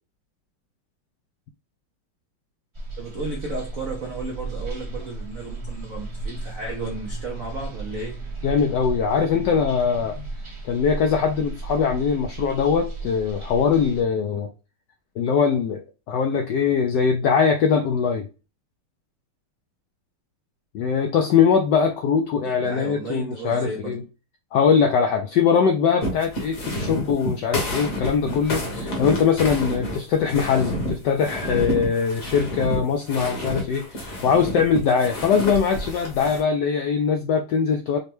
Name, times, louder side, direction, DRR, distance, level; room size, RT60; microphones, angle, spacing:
sound 1, 2.7-14.0, right 2 dB, 35° right, 0.4 m, -34 dB
voice 1, 3.0-8.2 22.4-24.0, right 3 dB, 75° right, 0.7 m, -34 dB
voice 2, 8.4-10.2 10.6-14.5 15.2-18.3 20.7-24.0 24.5-38.0, left 6 dB, 80° left, 0.9 m, -21 dB
sound 2, 26.0-36.4, equal, 45° left, 1.4 m, -29 dB
5.1 x 2.2 x 3.0 m
omnidirectional pair, 2.4 m